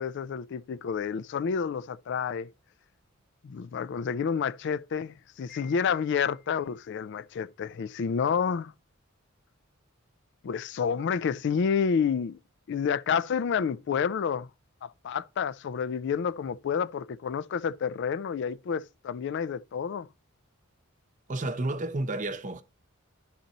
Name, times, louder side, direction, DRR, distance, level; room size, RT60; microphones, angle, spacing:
voice 1, 0.0-2.5 3.4-8.7 10.4-12.4 12.7-14.5 14.8-20.1, left 6 dB, 55° left, 0.3 m, -29 dB
Wind chime, 5.5-6.9, left 11 dB, 5° left, 1.1 m, -53 dB
voice 2, 21.3-22.6, right 2 dB, 35° right, 0.8 m, -31 dB
11.5 x 3.9 x 4.1 m
head